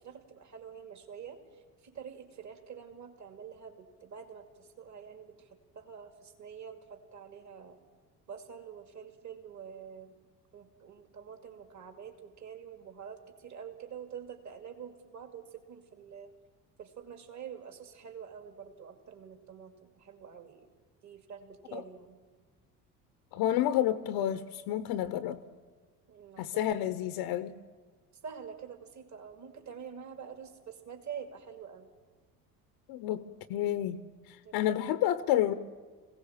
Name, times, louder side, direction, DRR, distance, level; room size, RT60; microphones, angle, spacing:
voice 1, 0.0-1.4 1.8-5.5 5.7-7.8 8.3-10.2 10.5-16.3 16.8-20.7 21.0-22.2 26.1-26.7 28.2-31.9 34.4-34.6, right 7 dB, 35° right, 7 dB, 2.3 m, -46 dB
voice 2, 23.3-25.4 26.4-27.5 32.9-35.5, left 12 dB, 55° left, 13 dB, 0.9 m, -30 dB
22.0 x 16.5 x 7.3 m, 1.4 s
figure-of-eight pair, 65°, 47 cm